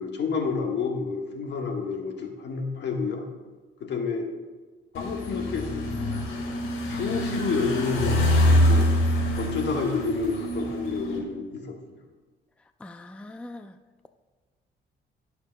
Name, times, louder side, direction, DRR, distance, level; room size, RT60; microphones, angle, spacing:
voice 1, 0.0-3.2 3.8-4.3 4.9-5.9 6.9-8.9 9.4-11.7, left 4 dB, 65° left, 2 dB, 1.5 m, -29 dB
sound 1, 4.9-11.2, left 1 dB, 85° left, 1.8 m, -25 dB
voice 2, 12.8-13.8, left 2 dB, 5° left, 8 dB, 0.4 m, -42 dB
17.5 x 6.7 x 2.3 m, 1.3 s
cardioid pair, 90°, 20 cm